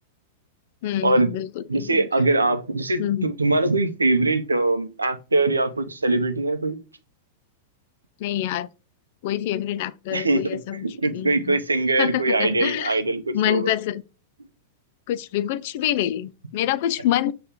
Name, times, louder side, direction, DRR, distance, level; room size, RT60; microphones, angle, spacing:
voice 1, 0.8-2.1 3.0-3.3 8.2-8.7 9.2-10.8 11.1-11.6 12.0-13.0 13.3-14.0 15.1-17.3, left 12 dB, 50° left, 0.3 m, -26 dB
voice 2, 1.7-6.8 10.1-13.7, right 2 dB, 85° right, 0.6 m, -22 dB
6.5 x 2.3 x 3.4 m
figure-of-eight pair, 95°, 0 cm